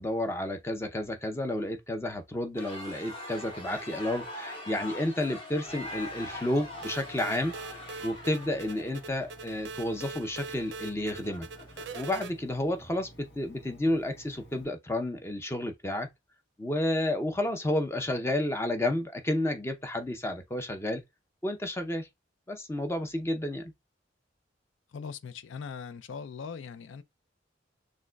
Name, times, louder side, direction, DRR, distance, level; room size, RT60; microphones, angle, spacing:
voice 1, 0.0-7.5 8.0-11.5 11.9-16.1 16.6-21.0 21.4-22.1 22.5-23.7, left 1 dB, 15° left, 0.5 m, -31 dB
sound 1, 2.5-12.5, left 1 dB, 30° left, 1.2 m, -43 dB
Engine, 5.7-14.7, right 1 dB, 65° left, 1.0 m, -54 dB
sound 2, 6.8-12.3, right 4 dB, 65° right, 0.5 m, -43 dB
voice 2, 24.9-27.0, left 6 dB, 85° left, 0.4 m, -40 dB
6.2 x 2.1 x 2.2 m
head